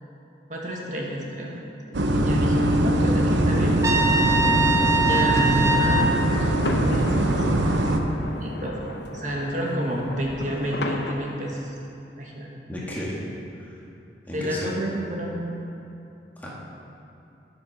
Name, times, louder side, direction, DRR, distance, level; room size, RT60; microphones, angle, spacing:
voice 1, 0.5-1.6 2.1-3.9 4.1-4.4 4.9-7.3 7.7-7.9 8.4-8.8 9.1-11.8 12.2-12.5 14.3-15.4, equal, 45° right, -2 dB, 1.4 m, -30 dB
sound 1, 1.9-8.0, right 1 dB, 90° right, 0.8 m, -22 dB
sound 2, 3.5-11.1, left 2 dB, 65° left, 0.7 m, -35 dB
Trumpet, 3.8-6.1, right 2 dB, 15° right, 0.6 m, -22 dB
voice 2, 12.7-13.2 13.6-13.8 14.3-14.7 16.4-16.5, left 1 dB, 10° left, -6 dB, 1.8 m, -33 dB
10.5 x 8.9 x 5.7 m, 2.8 s
head